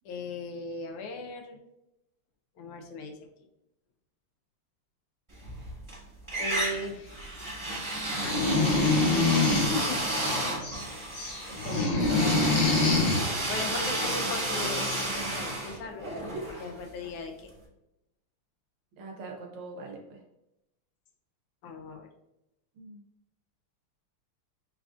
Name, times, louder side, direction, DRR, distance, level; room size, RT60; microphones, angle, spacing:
voice 1, 0.0-1.6 2.6-3.2 6.4-7.3 8.2-8.8 9.1-10.0 11.9-12.2 12.8-16.1 16.5-17.5 21.6-22.1, left 3 dB, 85° left, 5 dB, 1.6 m, -38 dB
sound 1, 5.4-6.0 6.3-17.2, right 1 dB, 15° right, 1.0 m, -32 dB
sound 2, 8.1-9.7 10.1-10.8 11.1-13.2 14.4-14.5 14.8-15.1, left 3 dB, 60° left, 1.5 m, -25 dB
voice 2, 11.6-12.0 19.0-20.2 22.8-23.0, right 3 dB, 85° right, 1 dB, 1.8 m, -42 dB
6.7 x 2.5 x 2.4 m, 0.88 s
omnidirectional pair, 2.4 m